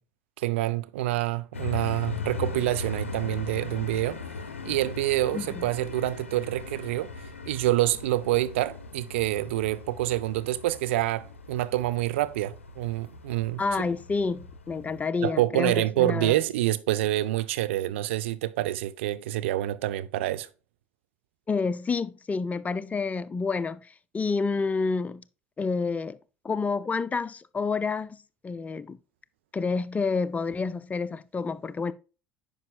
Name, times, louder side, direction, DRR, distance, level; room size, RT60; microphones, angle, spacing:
voice 1, 0.4-4.2 4.6-7.1 7.5-13.6 15.2-20.5, right 15 dB, 70° right, 0.5 m, -27 dB
sound 1, 1.5-15.0, left 4 dB, 85° left, 0.5 m, -39 dB
voice 2, 5.3-5.7 13.6-16.4 21.5-25.2 25.6-26.2 26.4-29.0 29.5-31.9, left 4 dB, 20° left, 0.5 m, -29 dB
9.6 x 5.3 x 2.3 m
figure-of-eight pair, 60°, 7 cm